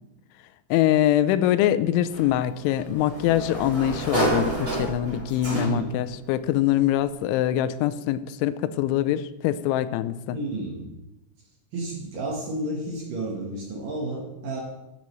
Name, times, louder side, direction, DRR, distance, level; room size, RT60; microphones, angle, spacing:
voice 1, 0.7-10.4, left 12 dB, 90° left, 12 dB, 2.9 m, -24 dB
Sliding door, 2.1-6.1, right 2 dB, 30° right, 0.8 m, -30 dB
voice 2, 5.5-5.9 10.3-10.9 11.7-14.6, right 2 dB, 65° right, -1 dB, 2.3 m, -31 dB
13.5 x 8.4 x 3.1 m, 0.95 s
omnidirectional pair, 5.3 m